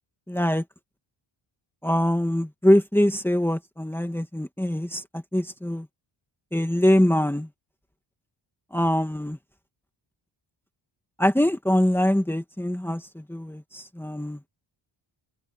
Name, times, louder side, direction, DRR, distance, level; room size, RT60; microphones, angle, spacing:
voice 1, 0.3-0.6 1.8-5.9 6.5-7.5 8.7-9.4 11.2-14.4, left 1 dB, 5° left, 2.5 m, -23 dB
cardioid pair, 100°, 47 cm